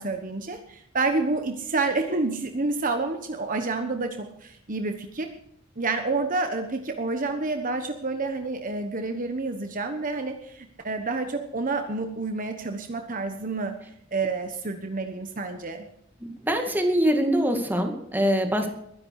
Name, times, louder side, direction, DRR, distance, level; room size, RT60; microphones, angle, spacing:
voice 1, 0.0-5.3 5.8-13.7 14.1-15.8, right 3 dB, 45° right, 6 dB, 1.2 m, -29 dB
voice 2, 16.2-18.7, equal, 10° right, 4 dB, 2.2 m, -24 dB
21.5 x 10.5 x 4.8 m, 0.75 s
head